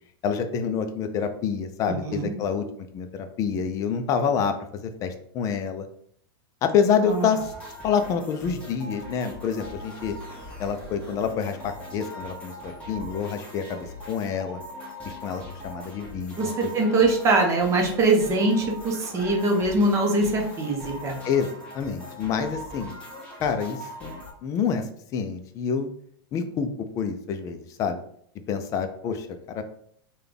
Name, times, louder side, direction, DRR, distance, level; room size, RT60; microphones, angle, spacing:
voice 1, 0.2-2.6 2.9-5.9 6.6-7.4 7.8-10.2 10.6-14.6 15.0-16.7 21.2-21.5 21.7-23.0 23.4-25.9 26.3-26.7 26.9-28.0 28.5-29.3 29.5-29.6, left 6 dB, 25° left, 8 dB, 0.4 m, -27 dB
voice 2, 1.9-2.3 7.0-7.3 16.4-21.2, right 2 dB, 25° right, 1 dB, 0.7 m, -23 dB
sound 1, 7.1-24.3, left 1 dB, 10° left, 1.0 m, -41 dB
3.6 x 2.2 x 3.4 m, 0.65 s
supercardioid pair, 150°, 12 cm